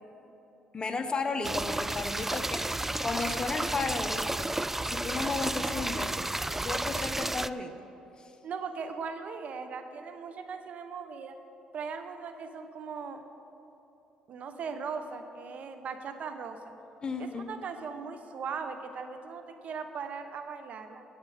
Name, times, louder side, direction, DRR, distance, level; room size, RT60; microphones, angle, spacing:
voice 1, 0.7-4.5 4.9-6.3 6.6-7.7 8.2-8.3 17.0-17.5, left 4 dB, 30° left, 7 dB, 1.1 m, -34 dB
sound 1, 1.4-7.5, right 2 dB, 10° right, 0.3 m, -32 dB
voice 2, 8.4-11.4 11.7-13.2 14.3-16.6 17.2-21.0, right 5 dB, 60° right, 8 dB, 1.0 m, -39 dB
17.5 x 8.0 x 5.0 m, 3.0 s
supercardioid pair, 75°, 3 cm